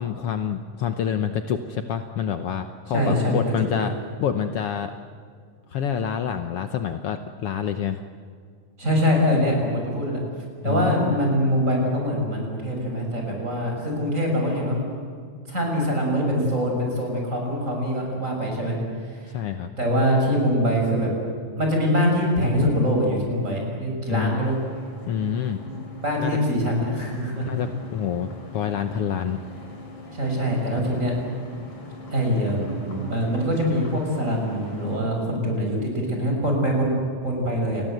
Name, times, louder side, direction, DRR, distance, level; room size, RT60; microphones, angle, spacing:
voice 1, 0.0-3.9 4.2-4.9 5.7-8.0 10.6-11.2 19.3-19.7 24.1-24.6 25.1-25.6 26.2-26.4 27.5-29.4 30.8-30.9 35.1-35.2, left 8 dB, 80° left, 8 dB, 1.3 m, -27 dB
voice 2, 2.9-3.4 3.7-3.9 8.8-10.2 10.6-14.8 15.5-18.8 19.8-21.1 21.6-24.6 25.6-27.5 30.1-31.1 32.1-37.8, equal, 20° right, 0 dB, 7.0 m, -23 dB
sound 1, 24.4-35.0, left 3 dB, 45° left, 4.7 m, -42 dB
29.5 x 21.0 x 8.0 m, 2.1 s
omnidirectional pair, 4.0 m